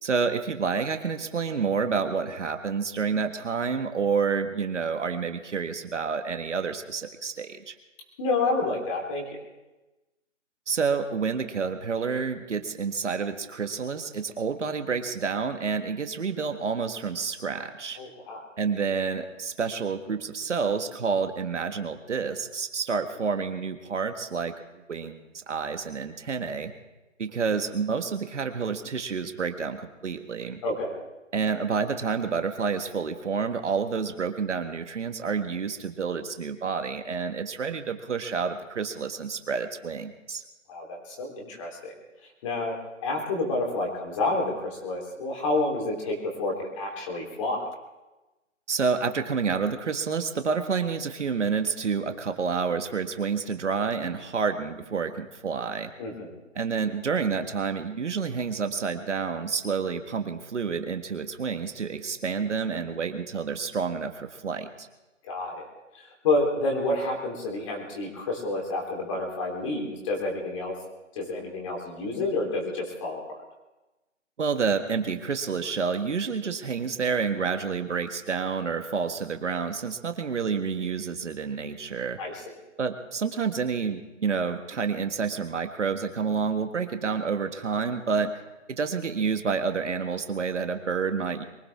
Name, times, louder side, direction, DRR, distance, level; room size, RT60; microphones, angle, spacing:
voice 1, 0.0-7.7 10.7-18.0 18.6-26.7 27.2-30.6 31.3-40.4 48.7-55.9 56.5-64.9 74.4-82.2 82.8-88.3 88.7-91.4, right 5 dB, 65° right, 7 dB, 1.7 m, -29 dB
voice 2, 8.2-9.2 18.0-18.4 30.6-31.0 40.7-41.9 42.4-42.8 43.0-47.6 56.0-56.3 65.2-65.7 65.9-70.7 71.1-73.4 82.2-82.5, left 2 dB, 25° left, 0 dB, 3.6 m, -29 dB
23.5 x 16.5 x 3.6 m, 1.0 s
hypercardioid pair, 160°, 38 cm